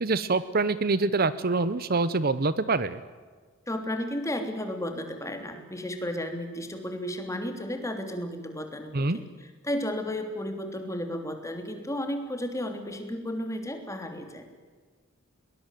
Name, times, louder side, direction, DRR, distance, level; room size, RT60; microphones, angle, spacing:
voice 1, 0.0-3.0 8.9-9.2, right 3 dB, 45° right, 15 dB, 0.9 m, -25 dB
voice 2, 3.7-9.3 9.6-14.4, left 1 dB, 15° left, 5 dB, 3.2 m, -33 dB
21.5 x 20.5 x 9.2 m, 1.5 s
head